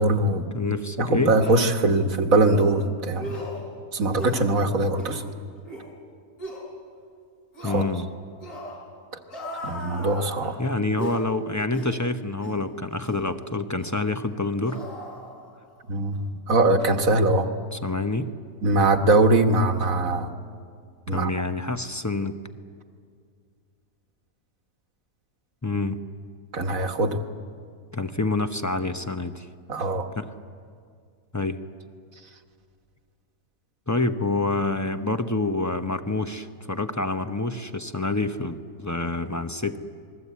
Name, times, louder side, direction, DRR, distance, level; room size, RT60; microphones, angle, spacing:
voice 1, 0.0-0.5 1.0-3.4 3.9-5.2 7.6-7.8 9.6-10.5 15.9-17.5 18.6-20.3 21.1-21.3 26.5-27.2 29.7-30.1, right 2 dB, 60° right, 5 dB, 1.8 m, -22 dB
voice 2, 0.5-1.3 7.6-8.1 10.6-14.8 17.7-18.3 21.1-22.4 25.6-26.0 27.9-29.5 30.1-30.3 31.3-31.6 33.9-39.8, left 2 dB, 15° left, 8 dB, 0.6 m, -27 dB
sound 1, 0.7-0.8 1.4-1.7 2.5-2.7 3.2-3.6 4.1-4.5 4.9-5.2 5.7-5.9 6.4-6.6 7.5-7.9 8.4-8.8 9.3-10.5 11.0-11.2 11.7-12.0 12.4-12.6 13.0-13.2 13.8-14.0 14.6-15.7 16.0-16.2, equal, 75° left, 7.0 m, -37 dB
27.5 x 21.0 x 8.4 m, 2.2 s
omnidirectional pair, 1.6 m